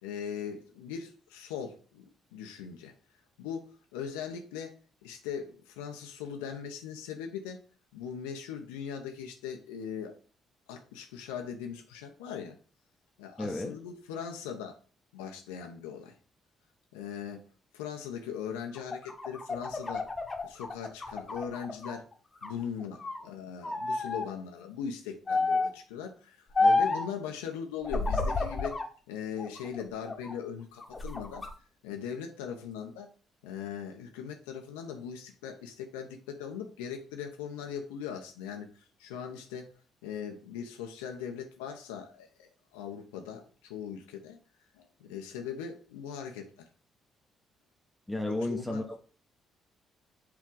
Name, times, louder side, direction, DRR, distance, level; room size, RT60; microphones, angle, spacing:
voice 1, 0.0-2.9 3.4-3.7 3.9-4.7 5.0-7.6 7.9-10.2 10.7-12.6 13.2-14.8 15.1-16.1 16.9-17.4 17.7-20.1 20.4-22.1 22.4-28.8 29.1-31.5 31.8-33.1 33.4-38.7 39.0-39.7 40.0-44.4 44.7-46.7 48.3-48.8, left 7 dB, 80° left, 3 dB, 0.9 m, -40 dB
voice 2, 13.4-13.8 48.1-49.0, left 1 dB, 10° left, 2 dB, 1.2 m, -33 dB
sound 1, 18.8-22.0 22.4-23.2 23.6-24.3 25.3-25.8 26.6-27.1 27.8-28.9 29.4-30.3 30.8-31.5, left 3 dB, 30° left, 1.3 m, -30 dB
7.7 x 3.7 x 3.9 m, 0.39 s
hypercardioid pair, 45°, 0 cm